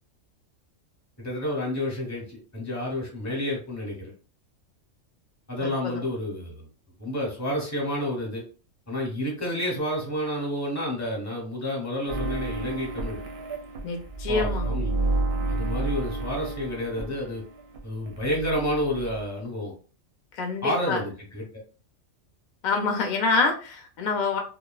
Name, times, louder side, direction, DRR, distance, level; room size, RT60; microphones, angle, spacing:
voice 1, 1.2-4.1 5.5-6.7 7.0-8.4 8.9-13.2 14.3-14.9 15.5-17.4 17.8-19.7 20.6-21.6, left 1 dB, 15° left, -2 dB, 0.8 m, -30 dB
voice 2, 5.6-6.0 13.8-14.7 20.3-21.0 22.6-24.4, left 4 dB, 55° left, 3 dB, 0.5 m, -26 dB
sound 1, 12.1-17.8 18.1-19.2, right 2 dB, 60° right, 0.7 m, -31 dB
2.9 x 2.0 x 2.2 m, 0.38 s
omnidirectional pair, 1.4 m